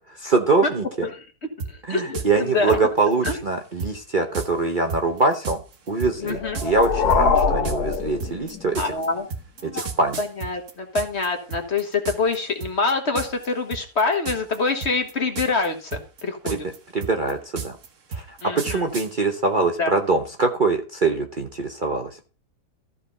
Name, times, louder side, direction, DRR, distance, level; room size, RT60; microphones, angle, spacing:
voice 1, 0.2-1.1 1.9-5.6 5.9-8.9 9.6-10.2 16.4-17.8 18.1-22.1, right 3 dB, 35° right, 4 dB, 1.0 m, -23 dB
sound 1, 1.6-1.7 2.1-2.3 2.7-3.4 3.8-3.9 4.3-4.5 4.9-11.3 11.5-12.4 12.6-12.9 13.2-13.5 13.7-14.6 14.8-15.7 15.9-19.1, right 5 dB, 55° right, 1.6 m, -32 dB
voice 2, 1.7-2.8 3.2-3.4 6.2-6.6 8.8-9.3 9.6-9.9 10.2-16.6 18.4-18.9 19.8-19.9, left 3 dB, 45° left, 5 dB, 1.8 m, -25 dB
sound 2, 6.3-8.9, left 5 dB, 80° left, 1.8 m, -23 dB
14.0 x 5.0 x 5.5 m, 0.36 s
omnidirectional pair, 1.7 m